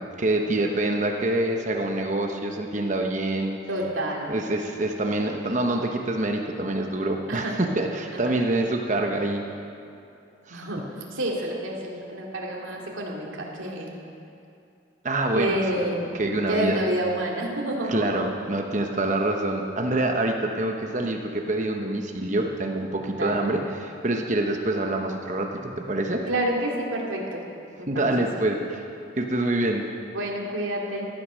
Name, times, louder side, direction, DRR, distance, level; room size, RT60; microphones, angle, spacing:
voice 1, 0.0-3.6 4.3-9.4 10.5-10.6 15.0-15.6 16.1-16.8 17.9-26.2 27.9-28.9 29.2-29.9, right 2 dB, 40° right, 2 dB, 1.0 m, -26 dB
voice 2, 3.7-4.3 7.3-7.6 10.5-10.8 11.1-13.9 15.3-16.1 16.5-18.2 23.2-23.5 26.3-27.4 27.8-28.1 30.1-31.1, right 1 dB, 85° right, -1 dB, 2.7 m, -28 dB
15.5 x 12.0 x 6.3 m, 2.6 s
head